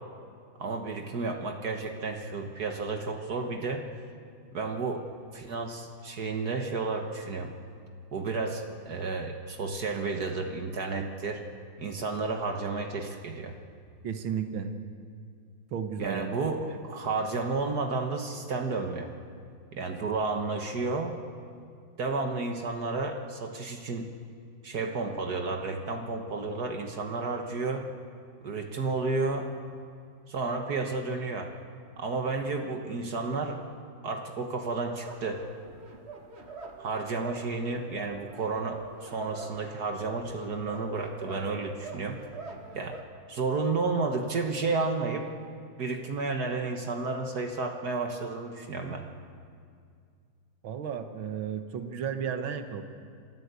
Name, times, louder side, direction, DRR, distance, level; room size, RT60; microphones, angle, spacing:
voice 1, 0.6-3.9 4.5-5.0 5.3-7.5 8.1-11.4 11.8-13.5 16.0-19.1 19.7-21.2 22.0-24.1 24.6-27.9 28.4-29.5 30.3-31.5 32.0-33.6 34.0-35.4 36.8-42.2 42.7-43.0 43.3-45.3 45.8-49.1, right 3 dB, 55° right, 3 dB, 1.8 m, -32 dB
voice 2, 14.0-14.7 15.7-16.3 50.6-52.8, right 7 dB, 85° right, 7 dB, 2.0 m, -33 dB
sound 1, 35.0-43.0, right 4 dB, 35° right, 1.8 m, -45 dB
26.5 x 14.5 x 8.2 m, 2.2 s
omnidirectional pair, 2.1 m